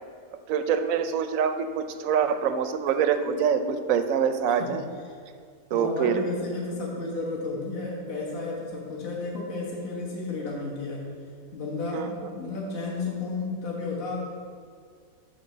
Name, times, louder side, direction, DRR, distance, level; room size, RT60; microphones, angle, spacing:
voice 1, 0.5-4.8 5.7-6.2 11.9-12.5, right 7 dB, 70° right, 9 dB, 0.9 m, -25 dB
voice 2, 5.7-11.1 11.5-14.2, left 3 dB, 40° left, -4 dB, 1.4 m, -32 dB
7.8 x 5.0 x 6.6 m, 2.2 s
omnidirectional pair, 1.6 m